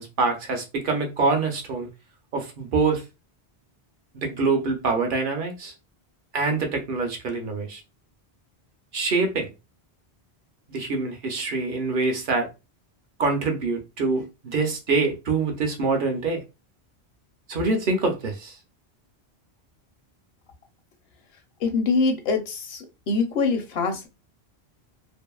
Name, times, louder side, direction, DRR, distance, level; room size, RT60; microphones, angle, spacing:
voice 1, 0.0-1.9 2.3-3.0 4.1-5.7 6.3-7.8 8.9-9.5 10.7-12.5 13.2-16.4 17.5-18.6, right 3 dB, 55° right, 0.8 m, -25 dB
voice 2, 21.6-24.1, left 4 dB, 70° left, 0.9 m, -24 dB
2.7 x 2.5 x 2.3 m
omnidirectional pair, 1.1 m